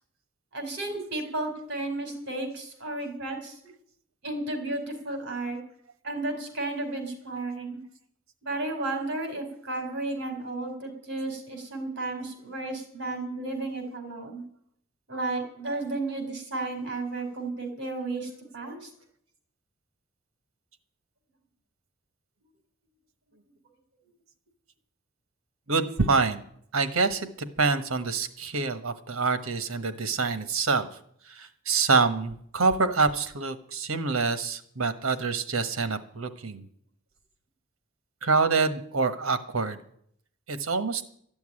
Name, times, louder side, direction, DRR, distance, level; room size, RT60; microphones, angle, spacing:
voice 1, 0.5-3.5 4.2-5.6 6.0-7.8 8.4-14.4 15.1-18.9, right 2 dB, 55° right, 4 dB, 4.4 m, -33 dB
voice 2, 25.7-26.4 26.7-27.3 27.6-30.9 31.3-36.6 38.2-39.8 40.5-41.0, right 4 dB, 80° right, 10 dB, 1.3 m, -26 dB
13.5 x 7.1 x 9.9 m, 0.66 s
head